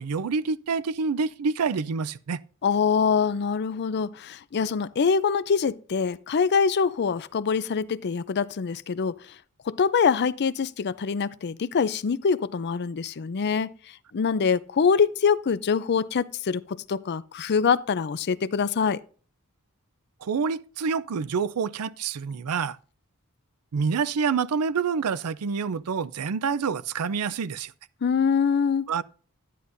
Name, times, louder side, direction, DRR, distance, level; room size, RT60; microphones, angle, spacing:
voice 1, 0.0-2.4 20.2-22.8 23.7-27.7 28.9-29.0, right 5 dB, 90° right, 0.5 m, -27 dB
voice 2, 2.6-9.2 9.7-13.7 14.1-19.0 28.0-28.9, left 6 dB, 50° left, 0.5 m, -24 dB
11.0 x 10.0 x 2.6 m
head